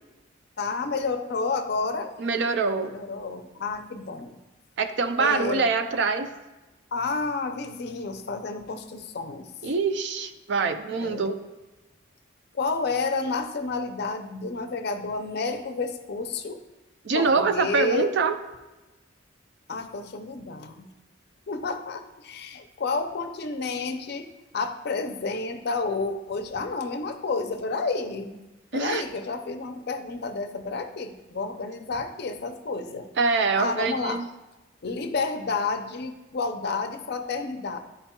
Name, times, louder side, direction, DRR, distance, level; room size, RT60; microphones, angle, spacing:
voice 1, 0.6-2.1 2.8-4.4 5.2-5.7 6.9-9.5 11.0-11.3 12.5-16.6 17.1-18.1 19.7-20.9 21.5-28.4 28.7-33.1 33.6-34.2 34.8-37.8, left 3 dB, 55° left, 8 dB, 0.5 m, -30 dB
voice 2, 2.2-2.9 4.8-6.3 9.6-11.4 17.1-18.4 28.7-29.0 33.2-34.3, right 4 dB, 60° right, 9 dB, 0.4 m, -24 dB
10.0 x 4.3 x 2.3 m, 1.1 s
head